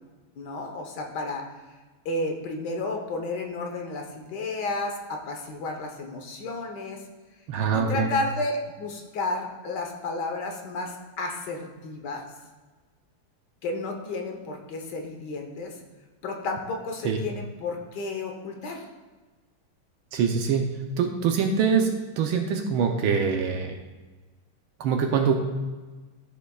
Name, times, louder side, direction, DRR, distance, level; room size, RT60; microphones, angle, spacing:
voice 1, 0.4-1.5 2.0-7.0 7.7-12.2 13.6-15.8 16.2-18.9, left 2 dB, 60° left, 2 dB, 1.5 m, -32 dB
voice 2, 7.5-8.1 17.0-17.2 20.1-20.7 21.0-23.7 24.8-25.3, right 6 dB, 75° right, 3 dB, 1.5 m, -24 dB
13.5 x 6.9 x 2.3 m, 1.3 s
omnidirectional pair, 2.3 m